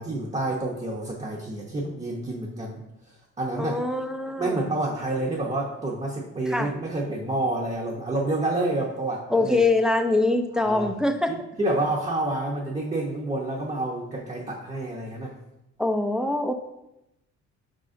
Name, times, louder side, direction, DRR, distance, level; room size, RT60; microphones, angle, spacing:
voice 1, 0.0-2.8 3.4-3.8 4.4-9.6 10.5-10.9 11.3-15.3, right 2 dB, 20° right, -1 dB, 0.7 m, -28 dB
voice 2, 3.6-4.6 6.5-6.7 9.3-11.3 15.8-16.5, left 2 dB, ahead, 4 dB, 0.3 m, -24 dB
4.7 x 3.7 x 2.5 m, 0.89 s
cardioid pair, 90°, 30 cm